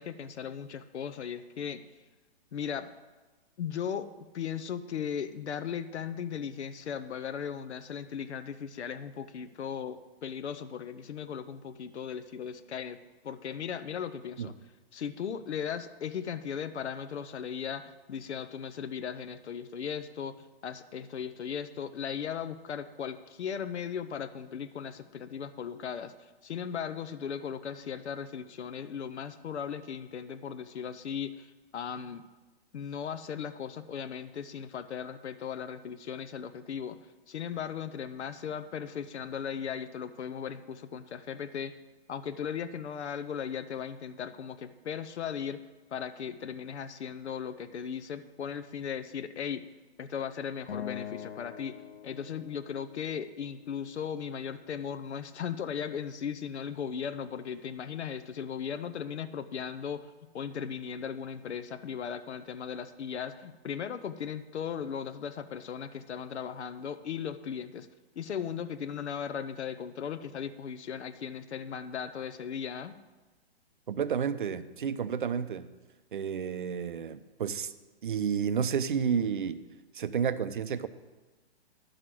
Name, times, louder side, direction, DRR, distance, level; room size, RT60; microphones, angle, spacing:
voice 1, 0.0-1.8 2.5-2.9 3.6-13.0 13.2-14.6 14.9-32.2 32.7-37.0 37.3-41.7 42.1-45.6 45.9-49.6 50.0-51.8 52.0-67.9 68.2-73.0, left 7 dB, 85° left, 11 dB, 0.8 m, -37 dB
Acoustic guitar, 50.7-53.9, left 9 dB, 60° left, 1.2 m, -43 dB
voice 2, 73.9-75.7 76.1-77.7 78.0-79.6 79.9-80.9, right 7 dB, 50° right, 13 dB, 0.6 m, -31 dB
11.0 x 6.4 x 7.6 m, 1.2 s
hypercardioid pair, 180°, 33 cm